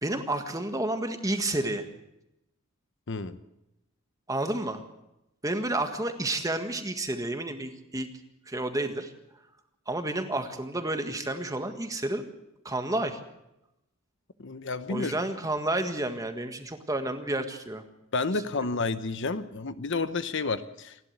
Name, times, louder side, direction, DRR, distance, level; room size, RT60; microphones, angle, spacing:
voice 1, 0.0-1.8 4.3-4.8 5.4-8.1 8.5-9.1 9.9-12.2 12.6-13.2 14.9-17.8, right 1 dB, 15° right, 6 dB, 1.7 m, -30 dB
voice 2, 3.1-3.4 14.4-15.1 18.1-21.0, left 3 dB, 60° left, 12 dB, 0.9 m, -30 dB
28.0 x 11.5 x 8.0 m, 0.89 s
head